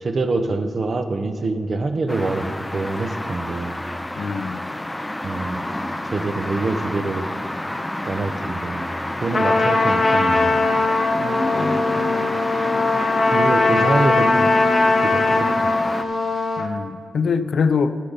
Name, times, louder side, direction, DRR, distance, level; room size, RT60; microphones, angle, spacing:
voice 1, 0.0-3.8 5.2-5.6 6.0-7.3 8.1-8.9 9.2-10.5 13.3-14.5 15.0-15.7, right 3 dB, 50° right, 7 dB, 0.7 m, -25 dB
sound 1, 2.1-16.0, left 1 dB, 10° left, 0.4 m, -28 dB
voice 2, 4.2-4.7 11.1-12.4 14.6-14.7 16.6-18.0, left 5 dB, 75° left, 12 dB, 0.4 m, -25 dB
Trumpet, 9.3-16.7, left 3 dB, 40° left, 0.9 m, -20 dB
13.5 x 6.6 x 3.9 m, 2.1 s
wide cardioid pair, 105°, 0 cm